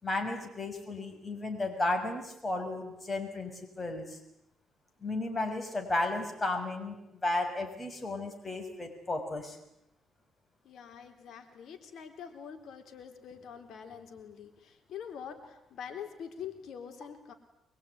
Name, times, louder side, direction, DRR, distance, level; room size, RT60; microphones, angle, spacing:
voice 1, 0.0-3.5 3.8-4.2 5.0-7.0 7.2-9.6, left 2 dB, 25° left, 4 dB, 6.0 m, -33 dB
voice 2, 10.7-17.3, left 7 dB, 70° left, 6 dB, 3.6 m, -45 dB
24.5 x 23.0 x 9.5 m, 0.82 s
cardioid pair, 90°, 0 cm